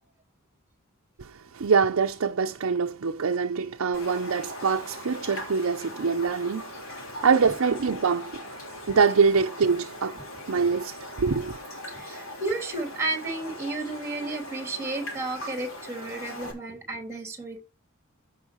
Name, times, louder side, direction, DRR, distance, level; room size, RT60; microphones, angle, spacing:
voice 1, 1.2-8.4 8.9-10.2 10.5-11.6, right 5 dB, 90° right, 0.6 m, -24 dB
Raindrop, 3.9-16.5, left 1 dB, 70° left, 3.7 m, -40 dB
voice 2, 11.9-17.6, right 2 dB, 15° right, 3.1 m, -32 dB
15.5 x 5.6 x 3.1 m
head